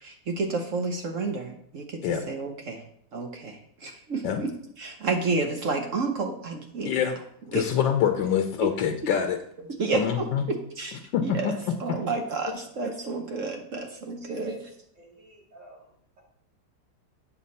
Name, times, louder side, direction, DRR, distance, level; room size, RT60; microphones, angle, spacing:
voice 1, 0.0-2.8 3.1-4.5 4.8-7.0 7.5-7.7 8.6-8.7 9.8-10.3 10.8-14.6, right 3 dB, 55° right, 4 dB, 1.0 m, -30 dB
voice 2, 7.5-9.4 9.9-10.4 11.1-11.5, left 8 dB, 80° left, 5 dB, 1.3 m, -25 dB
voice 3, 14.2-14.6 15.0-15.8, right 2 dB, 70° right, -3 dB, 3.1 m, -47 dB
8.5 x 6.3 x 4.1 m, 0.69 s
omnidirectional pair, 2.0 m